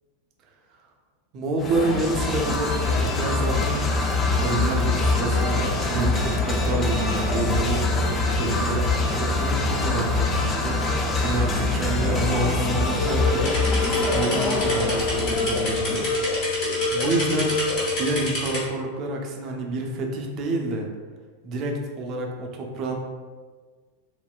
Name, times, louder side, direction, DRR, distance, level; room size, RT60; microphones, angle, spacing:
voice 1, 1.3-3.9 4.3-7.9 8.4-13.6 14.1-16.1 16.9-17.6 18.0-20.9 21.4-22.9, right 2 dB, 35° right, 1 dB, 0.5 m, -28 dB
sound 1, 1.6-16.3, left 3 dB, 25° left, 0.4 m, -24 dB
sound 2, 13.0-18.0, left 3 dB, 75° left, 0.6 m, -27 dB
sound 3, 13.4-18.6, left 1 dB, 45° left, 1.1 m, -30 dB
3.7 x 2.1 x 2.3 m, 1.5 s
figure-of-eight pair, 90°, 0 cm